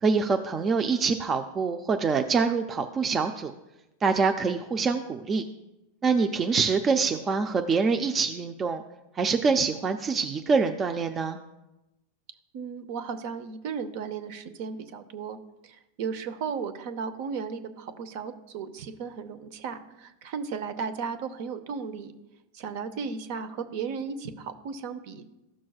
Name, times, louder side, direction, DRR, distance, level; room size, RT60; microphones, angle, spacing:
voice 1, 0.0-3.5 4.0-5.4 6.0-8.8 9.1-11.4, right 5 dB, 25° right, 5 dB, 0.4 m, -25 dB
voice 2, 12.5-15.4 15.6-22.1 22.5-25.2, right 6 dB, 60° right, 10 dB, 0.8 m, -35 dB
14.0 x 6.1 x 2.4 m, 0.95 s
supercardioid pair, 125°, 0 cm